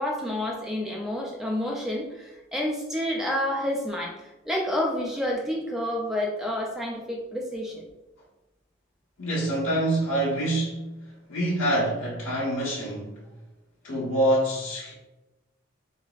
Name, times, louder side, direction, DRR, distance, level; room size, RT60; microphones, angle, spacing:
voice 1, 0.0-7.9, left 1 dB, ahead, -1 dB, 0.4 m, -29 dB
voice 2, 9.2-10.9 11.3-13.1 13.8-14.9, right 1 dB, 75° left, -5 dB, 1.2 m, -26 dB
4.0 x 2.0 x 2.4 m, 1.0 s
head